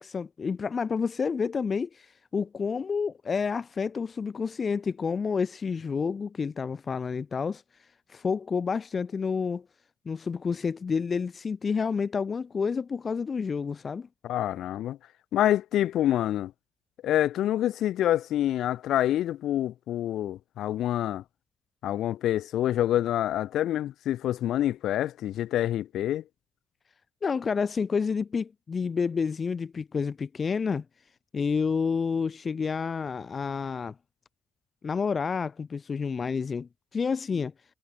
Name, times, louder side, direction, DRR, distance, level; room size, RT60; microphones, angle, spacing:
voice 1, 0.0-7.6 8.1-9.6 10.0-14.1 27.2-30.8 31.3-33.9 34.8-37.5, left 5 dB, 40° left, 2.8 m, -29 dB
voice 2, 14.2-15.0 15.3-16.5 17.0-21.2 21.8-26.2, left 12 dB, 80° left, 5.6 m, -27 dB
cardioid pair, 90°, 0 cm